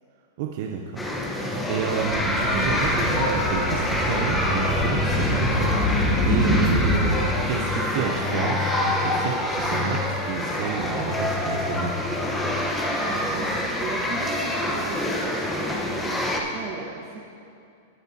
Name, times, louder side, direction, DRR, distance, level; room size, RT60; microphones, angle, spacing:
voice 1, 0.4-1.1 1.4-5.7 6.3-12.0, right 7 dB, 60° right, 1 dB, 0.8 m, -30 dB
sound 1, 1.0-16.4, left 1 dB, 10° left, 1.1 m, -26 dB
sound 2, 2.0-7.2, left 1 dB, 25° left, 2.5 m, -25 dB
voice 2, 12.8-17.2, right 4 dB, 45° right, -4 dB, 1.4 m, -38 dB
17.5 x 8.1 x 2.9 m, 2.4 s
hypercardioid pair, 125°, 0 cm